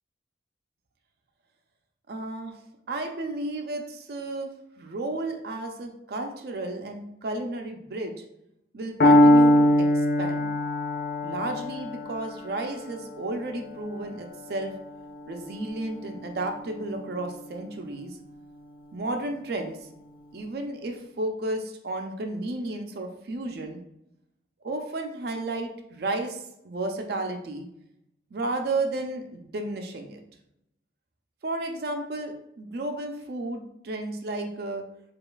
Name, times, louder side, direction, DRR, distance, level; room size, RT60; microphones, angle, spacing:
voice 1, 2.1-2.6 2.9-8.2 8.7-10.5 11.2-14.7 15.3-18.2 18.9-19.8 20.3-23.8 24.6-27.7 28.3-30.2 31.4-34.8, right 2 dB, 60° right, 4 dB, 0.4 m, -33 dB
Piano, 9.0-16.9, left 1 dB, 50° left, 0.5 m, -23 dB
5.0 x 2.4 x 2.3 m, 0.80 s
head